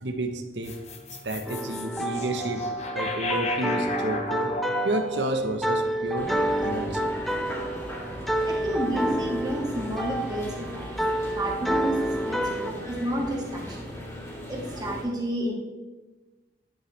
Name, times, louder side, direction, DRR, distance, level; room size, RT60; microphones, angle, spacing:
voice 1, 0.0-0.8 1.2-2.6 2.9-4.5 4.8-6.3 6.6-7.1, right 1 dB, 80° right, 6 dB, 1.1 m, -30 dB
sound 1, 0.6-7.0, left 1 dB, 40° left, 1.1 m, -34 dB
sound 2, 1.4-12.7, right 1 dB, ahead, 0.6 m, -29 dB
sound 3, 6.1-15.0, equal, 15° left, 2.8 m, -38 dB
voice 2, 8.5-10.9 11.3-13.9 14.5-15.5, right 1 dB, 25° right, -1 dB, 1.9 m, -30 dB
11.0 x 10.5 x 3.4 m, 1.2 s
head